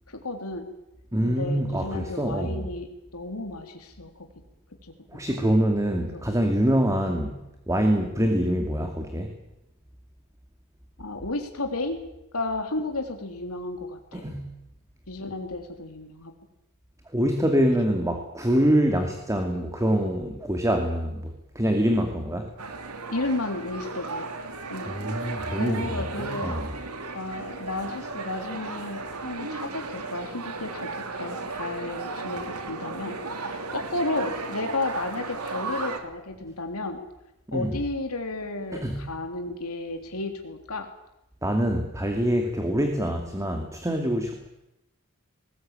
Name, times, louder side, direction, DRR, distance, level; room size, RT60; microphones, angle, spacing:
voice 1, 0.1-0.7 1.2-4.3 4.8-4.9 5.3-5.6 6.1-6.2 7.1-7.2 11.0-12.0 12.3-14.3 15.1-16.3 23.1-24.3 24.7-24.9 25.2-26.6 27.1-37.0 37.5-40.9, left 2 dB, 75° left, 4 dB, 3.5 m, -33 dB
voice 2, 1.1-2.7 5.1-7.4 7.7-9.3 14.1-14.5 17.1-22.5 24.9-26.7 37.5-37.8 38.7-39.1 41.4-44.5, equal, 15° right, 4 dB, 2.5 m, -25 dB
sound 1, 22.6-36.0, right 3 dB, 85° right, 2.9 m, -35 dB
21.0 x 19.5 x 9.1 m, 0.90 s
head